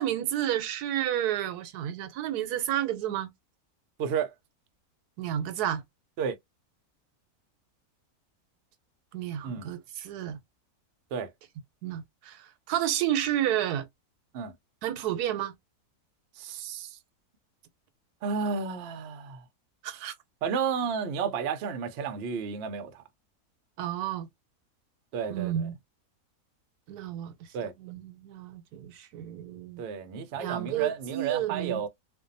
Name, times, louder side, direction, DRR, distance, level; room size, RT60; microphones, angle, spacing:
voice 1, 0.0-3.3 5.2-5.8 9.1-10.4 11.8-13.9 14.8-15.5 19.8-20.1 23.8-24.3 25.3-25.7 26.9-27.3 27.8-29.8 30.4-31.9, right 11 dB, 90° right, 1.1 m, -31 dB
voice 2, 4.0-4.3 6.2-6.4 9.4-9.7 11.1-11.3 14.3-14.5 16.4-17.0 18.2-19.4 20.4-23.0 25.1-25.7 27.5-27.7 29.8-31.9, right 6 dB, 70° right, 0.6 m, -32 dB
2.6 x 2.2 x 2.5 m
omnidirectional pair, 1.6 m